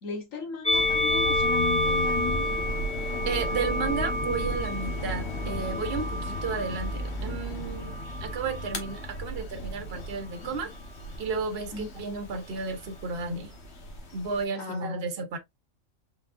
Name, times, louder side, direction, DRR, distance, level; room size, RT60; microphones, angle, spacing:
voice 1, 0.0-2.5 2.9-3.3 11.7-11.9 14.6-14.8, left 5 dB, 90° left, 1.7 m, -36 dB
Musical instrument, 0.6-7.1 7.9-8.9, left 1 dB, 5° left, 1.6 m, -29 dB
sound 1, 0.7-14.4, left 1 dB, 55° left, 1.5 m, -35 dB
voice 2, 3.2-10.7 11.2-13.5 14.1-15.4, right 4 dB, 50° right, 1.0 m, -33 dB
4.8 x 3.8 x 2.5 m
omnidirectional pair, 1.3 m